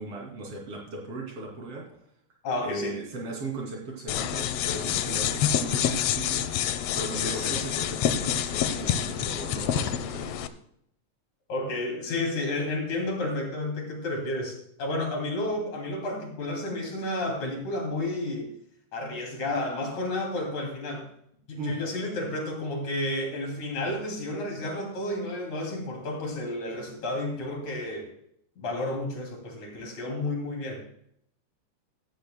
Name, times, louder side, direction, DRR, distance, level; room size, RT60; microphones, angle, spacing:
voice 1, 0.0-1.9 2.6-10.5 21.6-21.8, right 2 dB, 50° right, -1 dB, 3.7 m, -37 dB
voice 2, 2.4-3.0 7.2-7.5 11.5-18.5 18.9-21.1 21.5-28.1 28.6-30.8, left 1 dB, 70° left, 1 dB, 4.0 m, -31 dB
sound 1, 4.1-10.5, left 9 dB, 90° left, 1.4 m, -27 dB
15.5 x 13.5 x 2.2 m, 0.72 s
omnidirectional pair, 3.5 m